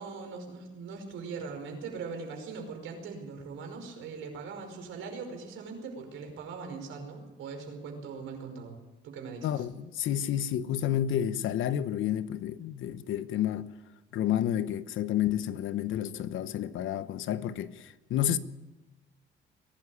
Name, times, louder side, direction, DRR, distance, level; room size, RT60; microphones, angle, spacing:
voice 1, 0.0-8.8 9.0-9.7, right 5 dB, 85° right, 5.3 m, -41 dB
voice 2, 9.4-13.7 14.1-18.4, left 10 dB, 80° left, 1.0 m, -30 dB
22.5 x 12.5 x 9.8 m
cardioid pair, 90°, 20 cm